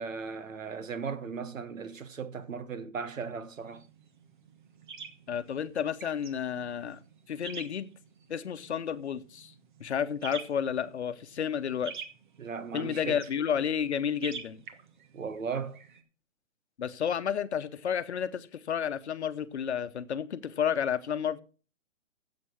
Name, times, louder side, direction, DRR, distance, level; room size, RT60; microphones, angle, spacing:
voice 1, 0.0-3.8 12.4-13.3 15.1-15.8, right 5 dB, 90° right, 1.5 m, -37 dB
sound 1, 3.6-16.0, right 6 dB, 40° right, 1.4 m, -48 dB
voice 2, 5.3-7.0 7.3-7.9 8.3-9.5 9.8-11.9 12.7-14.6 16.8-21.4, left 8 dB, 60° left, 1.0 m, -31 dB
9.3 x 7.7 x 5.9 m
hypercardioid pair, 165°, 38 cm